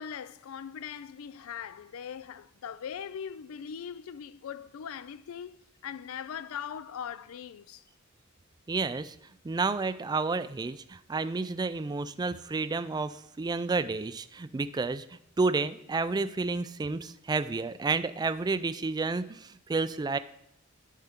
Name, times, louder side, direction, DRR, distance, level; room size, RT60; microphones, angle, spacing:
voice 1, 0.0-7.8, left 8 dB, 80° left, 0.4 m, -40 dB
voice 2, 8.7-9.2 9.4-20.2, right 3 dB, 20° right, 0.3 m, -30 dB
11.5 x 5.6 x 3.6 m
head